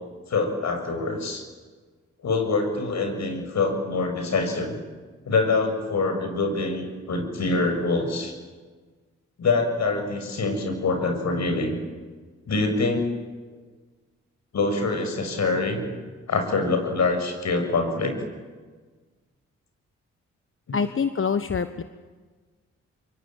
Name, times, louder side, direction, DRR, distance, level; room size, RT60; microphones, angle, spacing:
voice 1, 0.3-1.5 2.2-4.7 5.3-8.3 9.4-11.8 12.5-13.1 14.5-15.9 16.3-18.2 20.7-20.8, left 3 dB, 65° left, 6 dB, 7.0 m, -25 dB
voice 2, 20.7-21.8, left 6 dB, 45° left, 10 dB, 1.4 m, -25 dB
25.5 x 24.0 x 9.1 m, 1.4 s
supercardioid pair, 50°, 29 cm